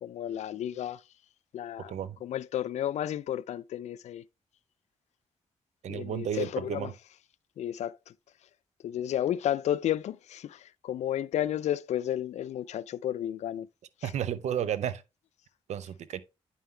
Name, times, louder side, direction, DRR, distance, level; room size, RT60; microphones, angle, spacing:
voice 1, 0.0-1.0 1.5-1.9 2.2-4.2 5.9-6.9 7.6-8.0 8.8-13.7 14.0-14.1, left 11 dB, 80° left, 0.4 m, -32 dB
voice 2, 5.8-6.9 14.0-15.0 15.7-16.2, right 9 dB, 85° right, 0.7 m, -32 dB
9.0 x 5.6 x 3.2 m
cardioid pair, 70°, 11 cm